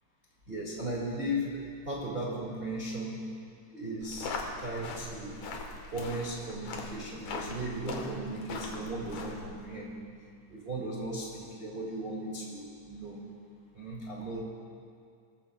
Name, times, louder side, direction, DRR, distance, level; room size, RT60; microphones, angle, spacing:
voice 1, 0.5-3.2 3.7-4.3 4.6-5.4 5.9-10.0 10.5-13.2 13.7-14.4, right 1 dB, 20° right, -4 dB, 1.6 m, -36 dB
sound 1, 4.0-9.6, left 3 dB, 65° left, 2.6 m, -41 dB
21.5 x 15.0 x 2.3 m, 2.2 s
omnidirectional pair, 3.6 m